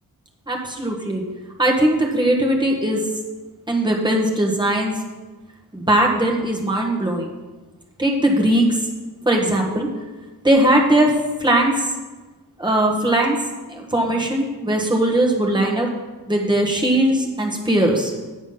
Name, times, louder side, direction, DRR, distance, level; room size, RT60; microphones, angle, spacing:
voice 1, 0.5-1.2 1.6-3.0 3.7-5.0 5.7-7.3 8.0-8.8 9.2-9.9 10.4-11.9 12.6-13.4 13.7-15.9 16.3-18.1, right 1 dB, 10° right, 0 dB, 1.4 m, -19 dB
8.3 x 7.1 x 5.7 m, 1.2 s
wide cardioid pair, 165°, 37 cm